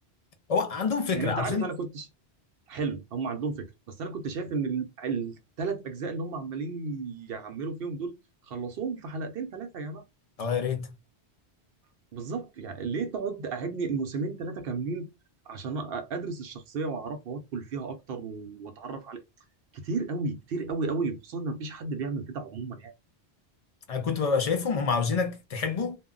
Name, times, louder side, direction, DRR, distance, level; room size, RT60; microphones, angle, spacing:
voice 1, 0.5-1.7 10.4-10.9 23.9-26.0, left 5 dB, 50° left, 0.4 m, -27 dB
voice 2, 1.1-2.1 2.7-8.1 8.4-10.0 12.1-15.1 15.5-19.2 19.7-22.9, right 4 dB, 65° right, 0.8 m, -33 dB
2.2 x 2.1 x 3.6 m
omnidirectional pair, 1.1 m